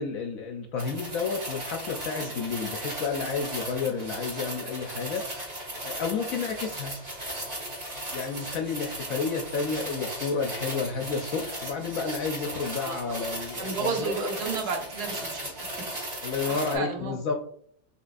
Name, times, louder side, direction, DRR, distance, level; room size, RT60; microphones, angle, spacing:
voice 1, 0.0-5.6 5.8-6.9 8.1-14.1 16.2-17.3, left 5 dB, 70° left, 2 dB, 0.8 m, -31 dB
sound 1, 0.8-16.7, right 1 dB, 40° right, 1.9 m, -36 dB
voice 2, 13.6-15.7 16.0-16.2 16.5-17.2, right 4 dB, 70° right, 2 dB, 1.4 m, -32 dB
5.2 x 3.4 x 2.5 m, 0.62 s
omnidirectional pair, 1.8 m